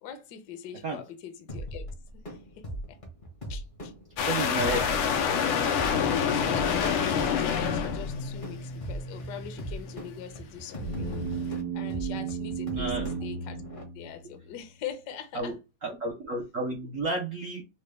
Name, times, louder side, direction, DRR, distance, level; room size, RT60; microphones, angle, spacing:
voice 1, 0.0-1.9 2.1-3.0 3.5-3.9 6.0-13.6 13.9-15.5, left 9 dB, 65° left, 1.1 m, -42 dB
sound 1, 1.5-13.8, equal, 45° left, 0.6 m, -40 dB
sound 2, 4.2-11.6, left 7 dB, 90° left, 1.5 m, -28 dB
voice 2, 4.3-4.9 12.7-13.1 15.3-15.6 15.8-17.6, right 1 dB, 75° right, 0.7 m, -31 dB
sound 3, 10.8-14.5, right 6 dB, 60° right, 1.2 m, -34 dB
4.2 x 2.2 x 3.3 m
omnidirectional pair, 2.4 m